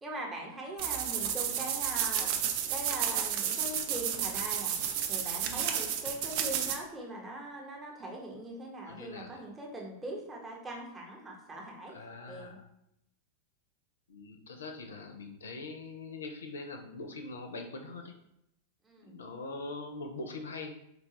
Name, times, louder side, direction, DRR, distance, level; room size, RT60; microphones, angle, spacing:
voice 1, 0.0-2.3 2.7-4.7 5.1-11.9 12.3-12.6 18.9-19.1, right 1 dB, 15° right, -2 dB, 0.8 m, -41 dB
sound 1, 0.8-6.8, right 9 dB, 45° right, 0.4 m, -32 dB
voice 2, 8.9-9.4 11.9-12.6 14.1-18.1 19.0-20.7, left 3 dB, 65° left, 5 dB, 0.4 m, -42 dB
3.8 x 2.2 x 2.8 m, 0.80 s
figure-of-eight pair, 90°, 0 cm